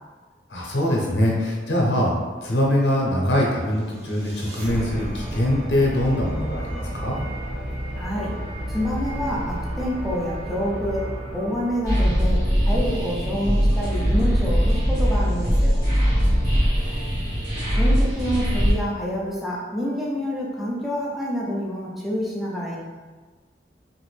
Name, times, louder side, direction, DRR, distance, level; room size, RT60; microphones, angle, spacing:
voice 1, 0.5-7.2 16.0-16.6, left 1 dB, 80° left, -2 dB, 0.7 m, -23 dB
sound 1, 3.6-12.7, equal, 75° right, 0.8 m, -32 dB
voice 2, 8.0-8.4 8.7-15.8 17.8-22.8, equal, ahead, -6 dB, 0.4 m, -27 dB
sound 2, 11.8-18.7, equal, 45° right, 1.3 m, -21 dB
3.0 x 2.5 x 3.2 m, 1.4 s
head